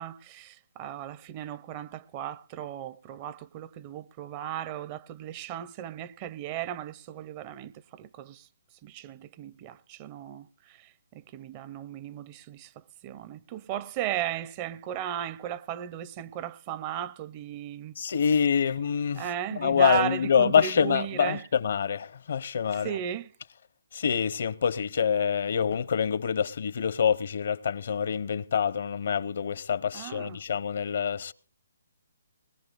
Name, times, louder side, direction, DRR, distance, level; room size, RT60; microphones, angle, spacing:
voice 1, 0.0-8.5 8.8-17.9 19.1-21.5 22.7-23.3 29.9-30.4, right 10 dB, 30° right, 0.6 m, -36 dB
voice 2, 18.0-19.2 19.6-22.9 23.9-31.3, left 7 dB, 60° left, 0.7 m, -26 dB
21.5 x 20.0 x 2.5 m
hypercardioid pair, 145°, 0 cm